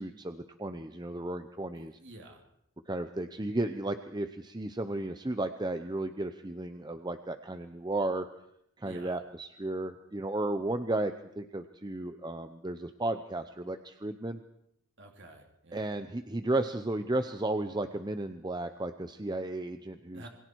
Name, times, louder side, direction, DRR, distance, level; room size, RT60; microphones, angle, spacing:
voice 1, 0.0-2.0 2.9-8.3 8.8-14.4 15.7-20.3, right 2 dB, 20° right, 8 dB, 0.7 m, -34 dB
voice 2, 1.7-2.4 8.8-9.2 15.0-15.9 20.1-20.3, right 1 dB, 55° right, 2 dB, 3.1 m, -50 dB
27.5 x 22.0 x 4.7 m, 0.77 s
head